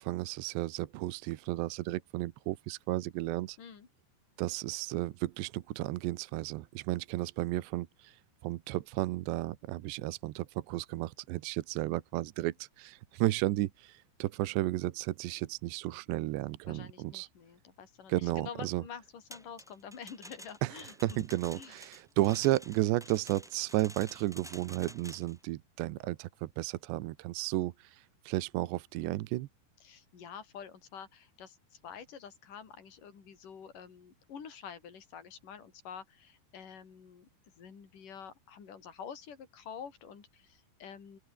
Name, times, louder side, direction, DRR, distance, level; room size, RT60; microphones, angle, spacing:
voice 1, 0.0-3.6 4.4-17.3 18.1-18.8 20.6-20.7 21.0-29.5, right 17 dB, 75° right, 3.0 m, -33 dB
voice 2, 16.7-21.3 21.6-21.8 29.8-37.3 37.6-41.2, left 7 dB, 45° left, 5.6 m, -48 dB
sound 1, 19.3-25.4, equal, ahead, 2.5 m, -51 dB
open air
omnidirectional pair, 5.3 m